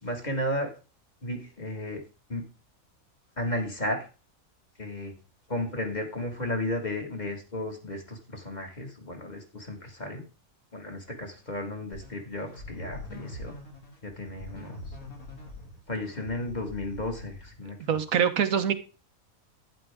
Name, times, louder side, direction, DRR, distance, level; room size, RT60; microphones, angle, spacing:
voice 1, 0.0-0.7 1.2-2.0 2.3-2.5 3.4-4.1 4.8-5.1 5.5-10.2 10.7-13.5 14.0-14.8 15.9-18.0, left 1 dB, 30° left, 2 dB, 2.0 m, -34 dB
sound 1, 11.9-17.7, left 1 dB, 85° left, 3.3 m, -43 dB
voice 2, 17.9-18.7, right 8 dB, 80° right, 9 dB, 1.4 m, -24 dB
11.5 x 9.7 x 3.6 m, 0.33 s
omnidirectional pair, 1.4 m